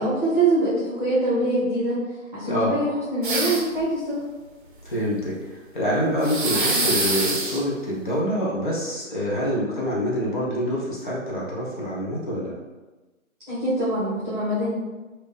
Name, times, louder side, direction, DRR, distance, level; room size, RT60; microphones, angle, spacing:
voice 1, 0.0-2.0 2.3-4.2 13.5-14.7, right 2 dB, 5° right, -12 dB, 1.0 m, -24 dB
sound 1, 3.2-3.8 6.2-7.6, right 2 dB, 40° right, 0.7 m, -24 dB
voice 2, 4.8-12.5, equal, 35° left, -5 dB, 1.0 m, -26 dB
4.6 x 2.7 x 3.4 m, 1.2 s
figure-of-eight pair, 155°, 41 cm